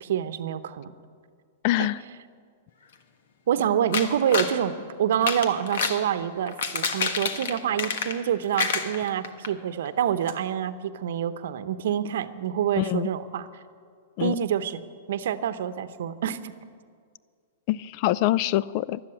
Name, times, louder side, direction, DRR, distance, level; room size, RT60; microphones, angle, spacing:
voice 1, 0.0-0.9 1.8-1.9 3.5-13.5 14.2-16.5, right 9 dB, 70° right, 12 dB, 0.8 m, -27 dB
voice 2, 1.6-2.0 12.8-13.1 14.2-14.4 17.7-19.0, left 15 dB, 50° left, 20 dB, 0.4 m, -24 dB
sound 1, 3.9-4.6 5.1-6.0 6.5-8.3 8.6-9.5 9.9-10.0 10.3-10.4, left 5 dB, 70° left, 1.4 m, -28 dB
13.0 x 12.0 x 8.8 m, 2.1 s
hypercardioid pair, 115°, 0 cm